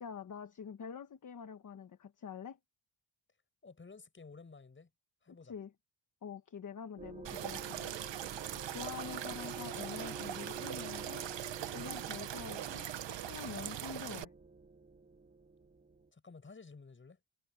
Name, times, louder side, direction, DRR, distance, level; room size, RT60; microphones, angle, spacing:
voice 1, 0.0-2.6 5.4-5.7 6.2-7.9 8.7-11.3 11.7-14.3, left 7 dB, 40° left, 1.2 m, -46 dB
voice 2, 3.6-4.9 5.2-5.5 8.7-8.8 16.1-17.2, left 4 dB, 25° left, 7.8 m, -53 dB
sound 1, 7.0-16.1, right 3 dB, 15° right, 0.6 m, -50 dB
sound 2, 7.2-14.2, right 12 dB, 65° right, 1.0 m, -41 dB
wide cardioid pair, 175°, 48 cm